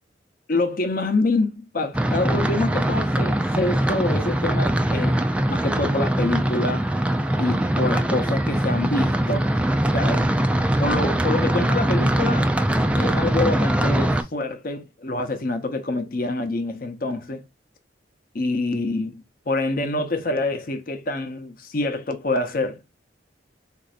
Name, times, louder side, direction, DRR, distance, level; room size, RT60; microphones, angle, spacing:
voice 1, 0.5-5.2 5.5-6.9 7.4-9.5 9.9-10.4 10.8-12.5 13.0-17.4 18.3-23.0, left 2 dB, 50° left, 0.7 m, -26 dB
sound 1, 1.9-14.2, right 1 dB, 5° right, 0.3 m, -22 dB
4.1 x 2.6 x 2.4 m
head